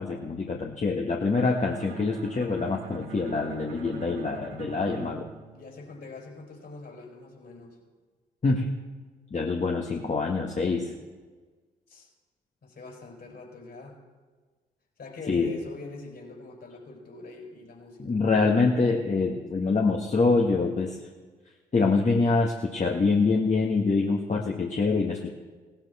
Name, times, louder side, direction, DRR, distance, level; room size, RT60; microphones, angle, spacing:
voice 1, 0.0-5.3 8.4-8.7 9.3-10.9 15.3-15.5 18.0-21.0 21.7-25.3, left 4 dB, 35° left, 0 dB, 1.5 m, -25 dB
Bowed string instrument, 1.4-6.3, right 6 dB, 65° right, 1.6 m, -43 dB
voice 2, 5.5-7.8 11.9-12.1 12.6-14.0 15.0-18.2, left 3 dB, 55° left, 0 dB, 5.3 m, -44 dB
17.0 x 13.0 x 4.3 m, 1.4 s
hypercardioid pair, 45°, 20 cm